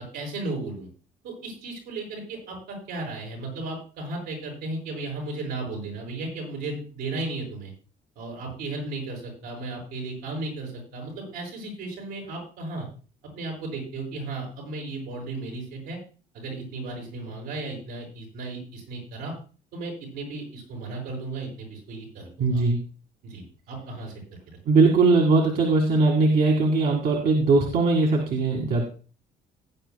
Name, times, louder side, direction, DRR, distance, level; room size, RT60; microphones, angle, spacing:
voice 1, 0.1-0.9 1.2-7.7 8.1-12.9 13.2-16.0 16.3-19.3 19.7-22.6 23.2-24.1, right 2 dB, 85° right, 0 dB, 6.8 m, -35 dB
voice 2, 22.4-22.8 24.7-28.8, right 3 dB, 65° right, 0 dB, 2.1 m, -20 dB
18.0 x 9.8 x 2.3 m, 0.37 s
cardioid pair, 110°, 17 cm